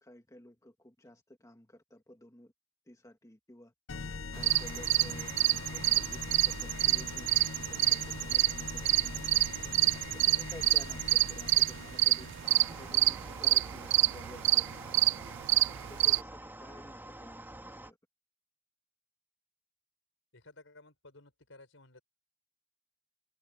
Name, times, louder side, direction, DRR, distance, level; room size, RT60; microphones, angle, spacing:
voice 1, 0.0-2.5 2.9-3.7 4.3-9.4 10.1-12.3 12.8-14.7 15.9-18.0, left 1 dB, 15° left, 2.0 m, -53 dB
sound 1, 3.9-13.3, left 4 dB, 85° left, 0.8 m, -43 dB
sound 2, 4.4-16.2, right 16 dB, 60° right, 0.3 m, -28 dB
sound 3, 12.4-17.9, right 1 dB, 10° right, 3.6 m, -47 dB
voice 2, 20.3-22.0, left 2 dB, 70° left, 6.5 m, -55 dB
open air
head